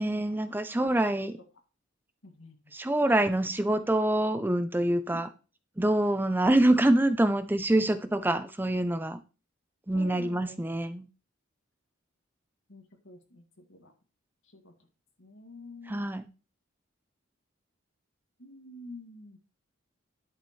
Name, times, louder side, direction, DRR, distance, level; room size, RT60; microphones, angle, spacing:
voice 1, 0.0-1.3 2.7-5.3 5.8-9.2 9.9-11.1 15.9-16.3, right 1 dB, 10° right, 0.5 m, -25 dB
voice 2, 2.2-2.6 5.1-5.2 9.9-10.6 12.7-13.9 14.5-14.7 15.2-16.0 18.4-19.4, left 2 dB, 80° left, 2.2 m, -47 dB
11.0 x 7.5 x 3.2 m
head